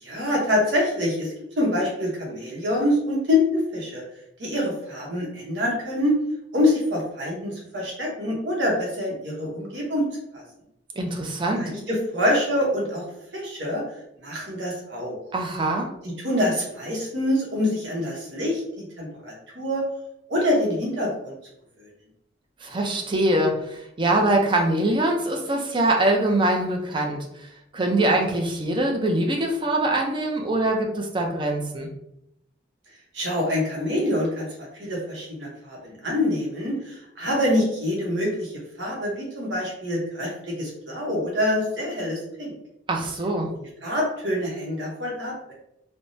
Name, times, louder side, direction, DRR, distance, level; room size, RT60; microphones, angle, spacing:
voice 1, 0.0-1.3 1.6-4.0 4.4-6.1 6.5-10.1 10.3-10.4 11.5-13.1 13.3-13.8 14.2-15.2 16.0-19.8 20.3-21.3 33.1-34.5 34.7-38.5 38.8-42.5 43.8-45.5, left 1 dB, 70° right, -3 dB, 0.9 m, -25 dB
voice 2, 11.0-11.7 15.3-15.9 22.6-31.9 42.9-43.5, right 1 dB, 25° right, 2 dB, 0.5 m, -23 dB
3.4 x 2.0 x 2.6 m, 0.78 s
head